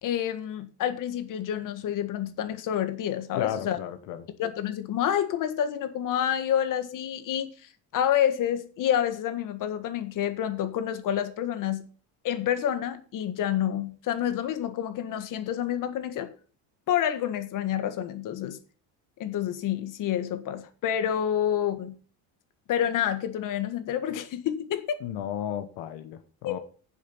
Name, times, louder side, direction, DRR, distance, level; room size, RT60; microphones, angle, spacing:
voice 1, 0.0-3.8 4.4-7.5 7.9-11.8 12.2-16.3 16.9-18.6 19.2-22.0 22.7-25.0 26.4-26.6, left 10 dB, 55° left, 10 dB, 1.7 m, -28 dB
voice 2, 3.4-4.2 25.0-26.6, left 10 dB, 85° left, 9 dB, 1.5 m, -34 dB
10.5 x 7.3 x 5.7 m, 0.41 s
cardioid pair, 140°, 39 cm